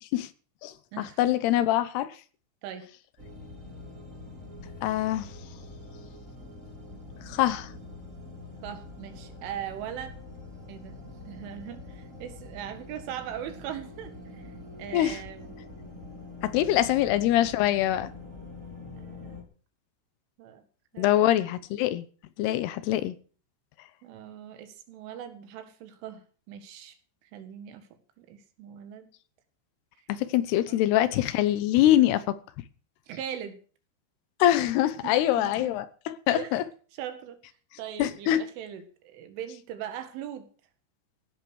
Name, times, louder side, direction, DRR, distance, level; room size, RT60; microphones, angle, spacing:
voice 1, 0.6-2.2 4.8-5.3 7.3-7.7 14.9-15.2 16.4-18.1 21.0-22.0 22.4-23.2 30.1-32.3 34.4-36.6 38.0-38.4, left 13 dB, 75° left, 2.6 m, -24 dB
sound 1, 3.2-19.4, left 2 dB, 20° right, 3.0 m, -45 dB
voice 2, 8.6-10.2 10.7-11.0 11.3-15.5 16.9-17.0 18.9-19.4 20.4-20.6 20.9-21.4 24.0-27.0 27.2-27.9 28.2-29.1 30.7-30.8 33.1-33.6 35.0-35.7 36.3-36.6 36.9-37.4 37.8-40.5, right 10 dB, 80° right, 4.2 m, -40 dB
16.5 x 10.5 x 6.4 m
omnidirectional pair, 5.5 m